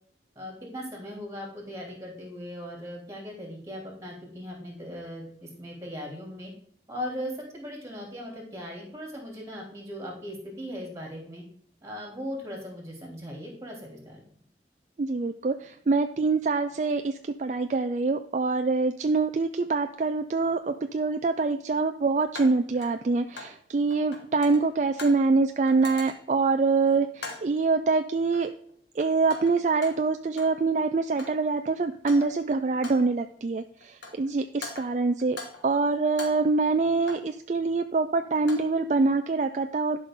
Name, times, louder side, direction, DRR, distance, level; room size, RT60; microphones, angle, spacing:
voice 1, 0.3-6.5 6.9-11.4 11.8-14.2, equal, 15° right, -1 dB, 2.9 m, -38 dB
voice 2, 15.0-28.5 29.0-40.0, right 3 dB, 45° right, 8 dB, 0.4 m, -25 dB
sound 1, 20.1-20.2 22.3-23.6 23.9-25.3 25.7-26.4 27.2-27.6 28.3-28.7 29.0-30.6 30.9-31.5 31.9-32.5 32.8-33.2 33.8-34.3 34.6-35.7 36.0-37.4 38.2-38.8, left 3 dB, 75° left, 1.8 m, -43 dB
11.5 x 5.6 x 3.7 m, 0.63 s
head